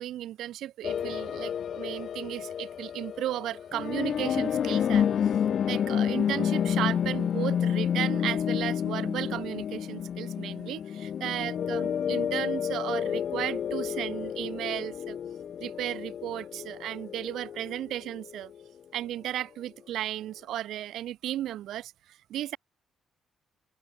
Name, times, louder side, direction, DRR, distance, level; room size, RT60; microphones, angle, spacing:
voice 1, 0.0-5.3 5.7-15.2 15.6-18.5 18.9-22.6, right 12 dB, 80° right, 6.1 m, -35 dB
sound 1, 0.8-18.5, left 8 dB, 60° left, 2.9 m, -30 dB
open air
cardioid pair, 100°, 0 cm